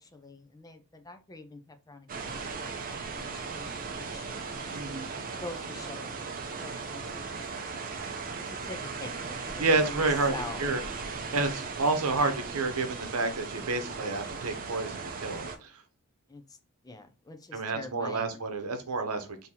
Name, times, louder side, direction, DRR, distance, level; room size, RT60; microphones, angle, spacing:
voice 1, 0.0-4.8 5.4-6.3 6.5-7.5 8.5-10.0 10.3-10.7 16.3-16.6 16.8-18.4, left 2 dB, 15° left, 0.4 m, -45 dB
sound 1, 2.1-15.6, right 4 dB, 40° right, 0.6 m, -37 dB
voice 2, 4.7-5.1 9.6-10.3 10.6-15.8 17.5-19.5, right 3 dB, 90° right, 0.8 m, -30 dB
3.8 x 2.8 x 2.8 m
head